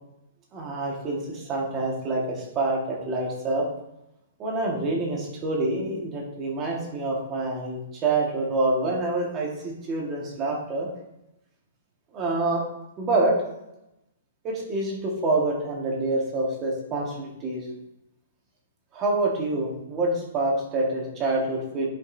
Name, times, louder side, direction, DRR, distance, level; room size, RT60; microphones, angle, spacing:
voice 1, 0.5-3.7 4.4-10.9 12.1-12.6 13.0-13.4 14.4-17.7 18.9-21.9, right 2 dB, 20° right, -2 dB, 1.5 m, -27 dB
14.0 x 5.3 x 2.6 m, 0.89 s
hypercardioid pair, 175°, 0 cm